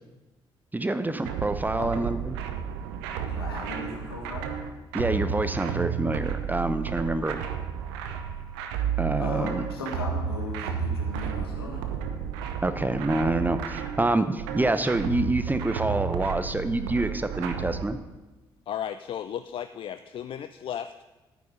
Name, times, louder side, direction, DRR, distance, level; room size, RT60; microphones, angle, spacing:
voice 1, 0.7-2.4 4.9-7.4 9.0-9.6 12.6-18.0, right 2 dB, 15° right, 11 dB, 0.8 m, -27 dB
sound 1, 1.3-17.9, right 7 dB, 70° right, 0.8 m, -32 dB
voice 2, 3.3-4.5 9.2-11.8, left 2 dB, 80° left, -1 dB, 1.7 m, -37 dB
voice 3, 18.7-20.9, left 9 dB, 45° left, 11 dB, 0.4 m, -34 dB
11.5 x 9.3 x 5.0 m, 1.1 s
figure-of-eight pair, 45°, 12 cm